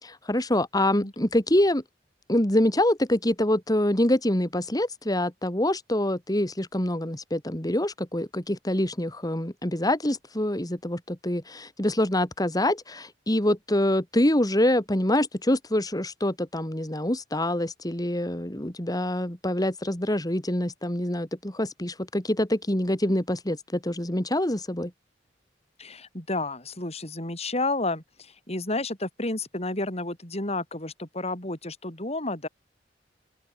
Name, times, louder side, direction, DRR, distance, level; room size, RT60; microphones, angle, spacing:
voice 1, 0.0-1.8 2.3-24.9, left 1 dB, 20° left, 2.9 m, -25 dB
voice 2, 25.8-32.5, left 2 dB, 35° left, 6.4 m, -31 dB
open air
head